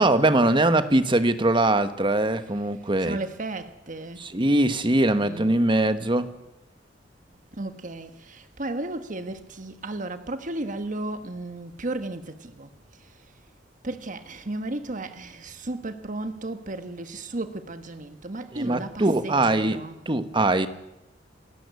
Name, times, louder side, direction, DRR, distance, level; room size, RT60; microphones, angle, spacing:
voice 1, 0.0-3.2 4.2-6.3 18.5-19.8 20.1-20.7, right 2 dB, 25° right, 1.2 m, -22 dB
voice 2, 2.7-4.3 5.2-5.6 7.5-13.4 13.8-20.0, right 2 dB, 45° right, 1.4 m, -35 dB
28.5 x 13.5 x 8.3 m
head